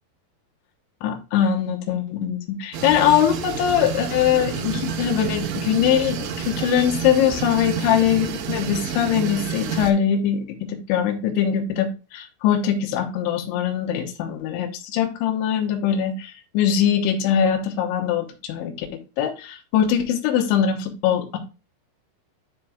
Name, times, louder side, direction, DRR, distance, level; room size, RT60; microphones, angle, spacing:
voice 1, 1.0-18.9 19.2-21.4, left 9 dB, 75° left, 4 dB, 3.2 m, -22 dB
sound 1, 2.7-9.9, right 7 dB, 75° right, 2.5 m, -29 dB
11.5 x 4.5 x 2.4 m, 0.31 s
omnidirectional pair, 5.7 m